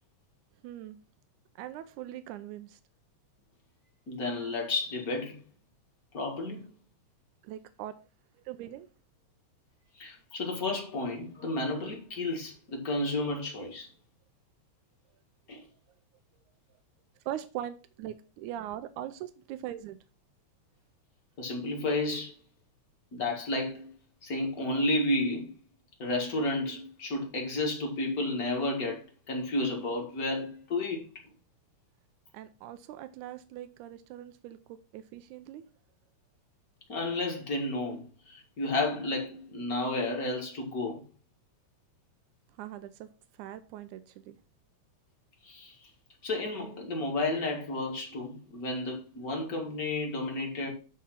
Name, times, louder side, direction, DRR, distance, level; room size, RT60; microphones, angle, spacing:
voice 1, 0.6-1.0 1.6-2.8 7.4-7.9 8.5-8.9 17.3-20.0 32.3-35.6 42.6-43.1 43.4-44.4, right 12 dB, 90° right, 2.1 m, -41 dB
voice 2, 4.1-5.4 6.1-6.6 10.0-13.9 15.5-15.6 21.4-22.3 23.1-23.9 24.2-25.5 26.0-29.0 29.3-31.1 36.9-41.0 45.5-45.7 46.2-50.7, left 2 dB, 35° left, 1.9 m, -32 dB
10.5 x 3.7 x 5.7 m
omnidirectional pair, 3.4 m